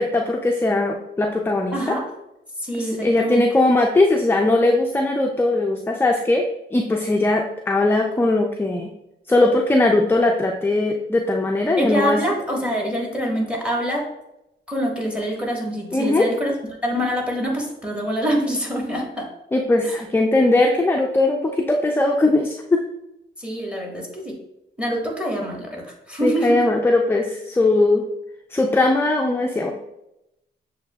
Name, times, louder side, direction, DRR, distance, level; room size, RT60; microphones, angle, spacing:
voice 1, 0.0-2.0 2.8-6.4 6.7-8.9 9.3-12.2 15.9-16.3 19.5-22.8 26.2-28.0 28.5-29.7, left 2 dB, 10° left, 2 dB, 0.4 m, -19 dB
voice 2, 1.7-2.0 2.6-3.4 11.8-14.1 14.7-16.5 16.8-19.3 19.9-20.0 23.4-24.4 24.8-26.5, equal, 5° right, -1 dB, 1.5 m, -25 dB
6.9 x 2.8 x 2.3 m, 0.87 s
cardioid pair, 65°, 21 cm